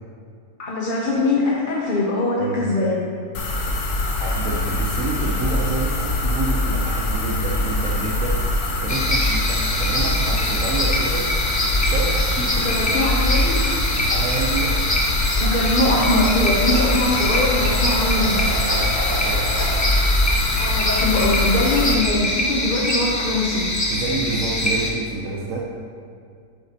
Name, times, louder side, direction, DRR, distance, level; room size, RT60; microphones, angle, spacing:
voice 1, 0.6-3.1 12.6-13.7 15.4-18.4 20.6-23.7, left 2 dB, 45° left, -4 dB, 0.7 m, -22 dB
sound 1, 3.3-21.9, left 1 dB, 75° left, 1.4 m, -23 dB
voice 2, 4.2-8.4 8.8-11.3 11.8-13.0 14.1-14.8 16.5-17.1 18.5-19.5 23.9-25.6, right 3 dB, 60° right, -3 dB, 1.1 m, -28 dB
sound 2, 8.9-24.9, left 1 dB, 30° left, 0.3 m, -24 dB
sound 3, 15.1-19.7, right 1 dB, 85° right, 1.7 m, -34 dB
8.1 x 7.2 x 2.9 m, 2.3 s
omnidirectional pair, 1.6 m